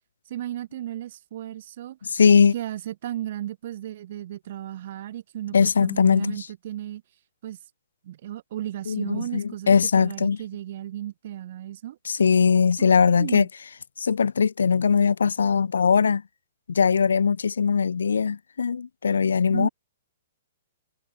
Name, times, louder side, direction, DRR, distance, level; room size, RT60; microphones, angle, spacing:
voice 1, 0.3-2.0 2.5-7.0 7.4-7.6 8.0-12.0 12.8-13.5 19.5-19.7, right 12 dB, 50° right, 2.1 m, -35 dB
voice 2, 2.0-2.5 5.5-6.4 8.9-10.4 12.1-13.5 14.0-16.2 16.7-19.7, left 6 dB, 65° left, 0.8 m, -20 dB
figure-of-eight pair, 115°, 0 cm